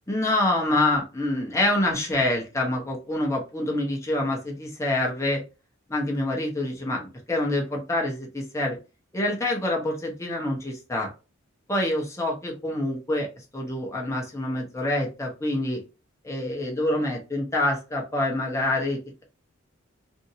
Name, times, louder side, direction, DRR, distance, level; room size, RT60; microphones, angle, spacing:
voice 1, 0.1-5.4 5.9-8.8 9.1-11.1 11.7-13.3 13.5-15.8 16.2-19.2, left 1 dB, 15° left, -1 dB, 0.8 m, -26 dB
2.7 x 2.6 x 2.7 m, 0.30 s
head